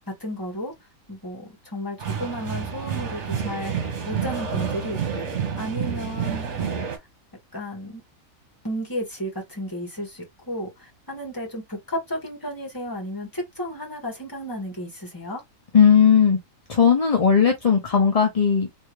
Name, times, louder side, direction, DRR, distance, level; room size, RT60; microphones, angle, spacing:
voice 1, 0.1-0.7 1.1-5.3 5.6-6.9 7.5-8.0 8.6-15.4, equal, 15° left, 1.6 m, -33 dB
sound 1, 2.0-7.0, right 7 dB, 55° right, 1.3 m, -29 dB
voice 2, 15.7-16.4 16.7-18.7, left 7 dB, 35° left, 0.6 m, -17 dB
3.5 x 2.8 x 3.1 m
omnidirectional pair, 1.5 m